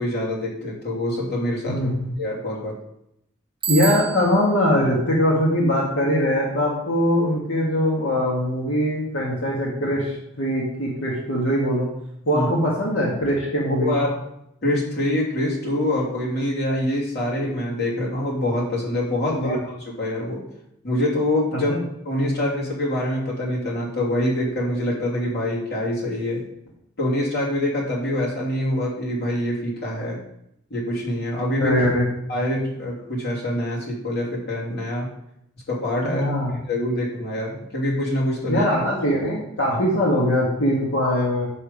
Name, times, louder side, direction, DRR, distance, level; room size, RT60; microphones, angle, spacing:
voice 1, 0.0-1.9 2.2-2.7 12.3-12.5 13.8-14.2 14.6-20.4 20.8-21.7 22.0-26.4 27.0-30.2 30.7-31.8 32.3-35.1 35.7-38.7 39.7-39.8, left 1 dB, 55° left, -4 dB, 3.1 m, -25 dB
Bicycle bell, 3.6-4.6, right 8 dB, 25° right, 0.8 m, -29 dB
voice 2, 3.7-11.9 12.3-13.9 19.4-19.6 21.5-21.8 31.6-32.1 36.0-36.5 38.5-41.5, equal, 80° left, -4 dB, 1.9 m, -22 dB
6.9 x 6.8 x 5.3 m, 0.77 s
head